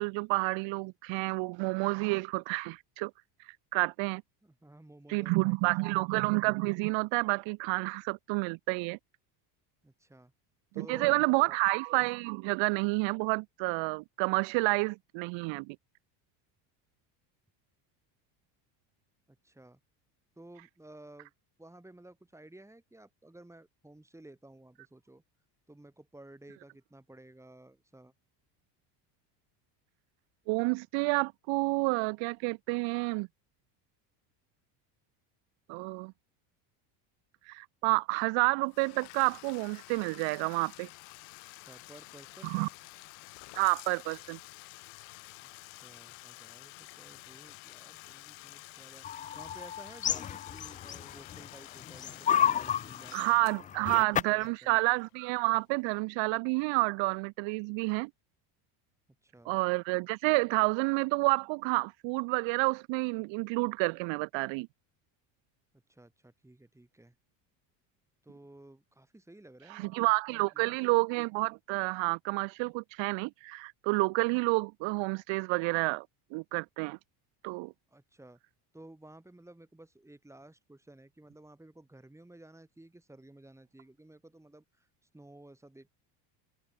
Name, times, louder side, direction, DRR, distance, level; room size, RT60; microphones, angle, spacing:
voice 1, 0.0-3.1 3.7-4.2 5.1-9.0 10.8-15.8 30.5-33.3 35.7-36.1 37.5-40.9 42.4-42.7 43.5-44.4 53.1-58.1 59.4-64.7 69.7-76.1 76.3-77.0 77.4-77.7, right 27 dB, 70° right, 1.5 m, -29 dB
voice 2, 4.4-5.9 9.8-10.3 10.7-11.6 19.3-19.8 20.4-21.3 21.6-25.2 25.7-28.1 41.6-42.6 45.4-54.8 59.2-59.5 65.9-67.1 68.2-70.8 77.9-78.4 78.7-84.9 85.1-85.9, right 1 dB, 5° right, 7.7 m, -54 dB
Bathtub (filling or washing), 38.6-55.4, left 40 dB or more, 75° left, 3.0 m, -50 dB
sound 1, 49.0-51.5 51.8-54.5, left 9 dB, 20° left, 0.3 m, -31 dB
cardioid pair, 125°, 48 cm